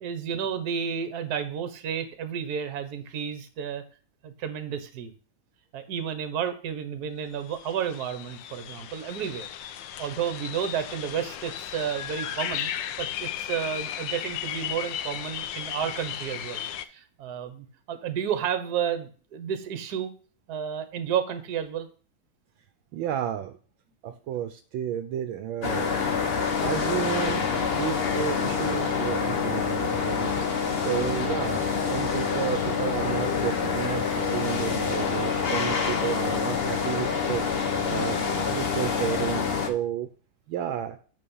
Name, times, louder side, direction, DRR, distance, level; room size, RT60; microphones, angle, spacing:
voice 1, 0.0-3.8 4.2-5.1 5.7-12.7 13.0-16.7 16.9-20.1 20.5-21.9, right 8 dB, 55° right, 9 dB, 1.5 m, -31 dB
sound 1, 7.2-7.3 7.5-16.8, left 10 dB, 70° left, 1.3 m, -35 dB
voice 2, 22.9-23.6 24.0-25.9 26.6-27.4 27.7-30.4 30.7-37.4 37.8-38.2 38.5-40.1 40.5-41.0, right 10 dB, 75° right, 9 dB, 1.4 m, -32 dB
sound 2, 25.6-39.7, left 5 dB, 40° left, 0.9 m, -27 dB
8.5 x 5.2 x 5.5 m, 0.40 s
omnidirectional pair, 2.3 m